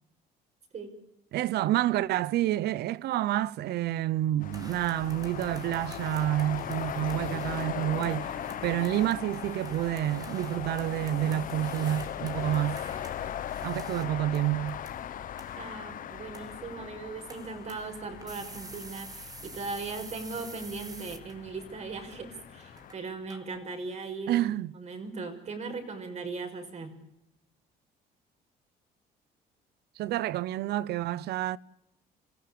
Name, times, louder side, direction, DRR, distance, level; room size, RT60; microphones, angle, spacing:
voice 1, 1.3-8.3 8.6-12.8 13.6-14.8 24.3-24.7 30.0-31.6, right 13 dB, 75° right, 0.8 m, -29 dB
sound 1, 4.4-22.9, left 10 dB, 55° left, 1.2 m, -39 dB
sound 2, 4.5-23.8, right 3 dB, 20° right, 2.7 m, -49 dB
voice 2, 15.6-24.4 24.7-26.9, right 4 dB, 40° right, 6.2 m, -38 dB
26.0 x 16.0 x 8.5 m
cardioid pair, 110°, 17 cm